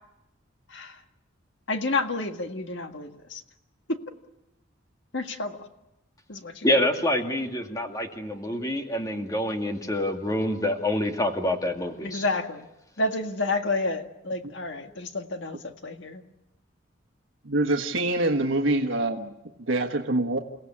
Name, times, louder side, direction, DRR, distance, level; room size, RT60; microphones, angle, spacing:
voice 1, 0.7-1.0 1.7-3.4 3.9-4.0 5.1-5.6 6.3-6.7 12.0-12.7 13.0-15.6 15.8-16.2, left 2 dB, 60° left, 6 dB, 1.8 m, -30 dB
voice 2, 6.6-12.3, left 1 dB, 20° left, 3 dB, 2.3 m, -26 dB
voice 3, 17.4-19.3 19.7-20.4, right 2 dB, 80° right, 3 dB, 1.4 m, -25 dB
29.5 x 17.0 x 8.7 m, 0.96 s
head